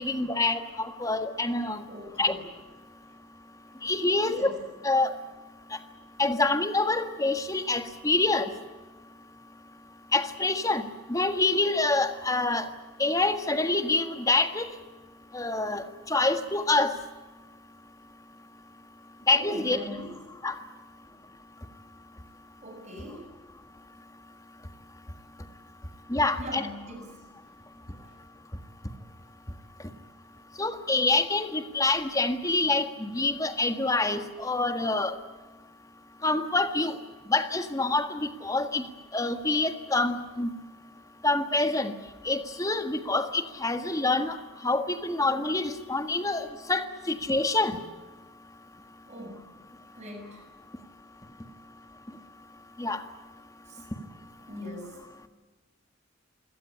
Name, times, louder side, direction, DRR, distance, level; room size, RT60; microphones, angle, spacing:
voice 1, 0.0-1.8 2.2-2.3 3.8-4.5 4.8-5.1 6.2-8.5 10.1-12.7 13.0-14.7 15.3-17.0 19.3-19.8 20.4-20.5 26.1-26.6 30.6-35.2 36.2-37.0 37.3-38.8 39.1-40.5 41.2-41.9 42.2-44.4 44.6-47.8 52.8-53.0, left 2 dB, 20° left, 9 dB, 1.6 m, -26 dB
voice 2, 1.9-2.5 3.1-3.2 4.2-4.6 19.3-20.2 22.6-23.3 26.3-27.5 28.0-28.2 49.1-49.4 49.9-50.5 53.7-53.9 54.5-55.1, equal, 40° right, 3 dB, 7.3 m, -41 dB
27.0 x 17.5 x 10.0 m, 1.2 s
head